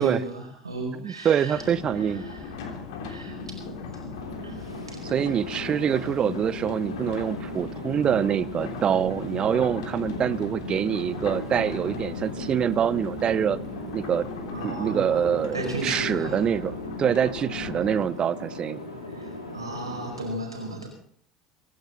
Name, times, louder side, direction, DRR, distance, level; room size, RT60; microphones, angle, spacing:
voice 1, 0.0-1.6 2.2-2.4 3.0-3.6 4.4-5.0 14.5-15.2 15.5-16.5 19.1-20.9, right 2 dB, 85° right, 1 dB, 5.0 m, -34 dB
voice 2, 1.0-2.2 5.0-13.6 13.9-14.3 14.6-18.8, right 8 dB, 35° right, 19 dB, 0.8 m, -25 dB
sound 1, 1.5-18.1, left 4 dB, 65° left, 3.2 m, -37 dB
sound 2, 4.1-20.3, left 1 dB, 85° left, 4.2 m, -38 dB
24.5 x 11.5 x 4.2 m, 0.62 s
figure-of-eight pair, 70°, 3 cm